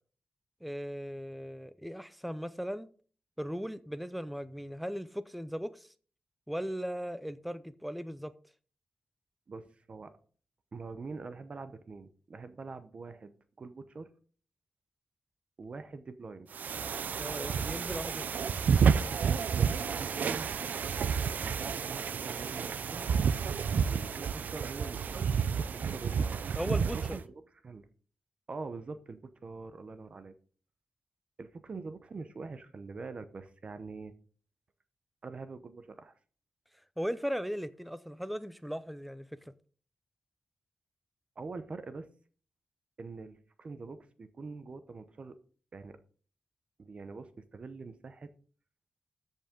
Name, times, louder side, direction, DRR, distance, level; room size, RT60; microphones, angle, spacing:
voice 1, 0.6-2.9 3.4-5.9 6.5-8.3 17.2-18.5 26.6-27.2 37.0-39.3, equal, ahead, 0.5 m, -37 dB
voice 2, 9.5-10.1 10.7-14.1 15.6-16.5 19.4-19.7 20.0-20.6 21.4-23.1 23.9-25.2 25.5-26.5 27.1-27.9 28.5-30.3 31.4-34.1 35.2-36.1 41.4-42.1 43.0-45.4 45.7-46.0 46.8-48.3, right 4 dB, 40° right, 0.7 m, -44 dB
sound 1, 16.5-27.2, right 6 dB, 70° right, 0.5 m, -30 dB
13.5 x 5.5 x 3.7 m
wide cardioid pair, 165°, 3 cm